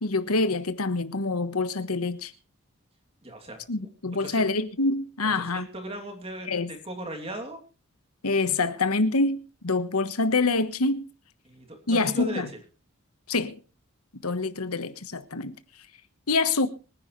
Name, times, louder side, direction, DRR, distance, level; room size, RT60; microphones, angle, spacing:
voice 1, 0.0-2.3 3.7-5.6 6.5-6.7 8.2-9.4 9.6-11.0 11.9-12.5 13.3-13.6 14.2-15.5 16.3-16.7, left 3 dB, 85° left, 1.3 m, -26 dB
voice 2, 3.2-3.6 4.2-4.4 5.3-7.6 11.4-12.6, right 1 dB, 25° right, 2.9 m, -37 dB
25.0 x 10.5 x 3.2 m
head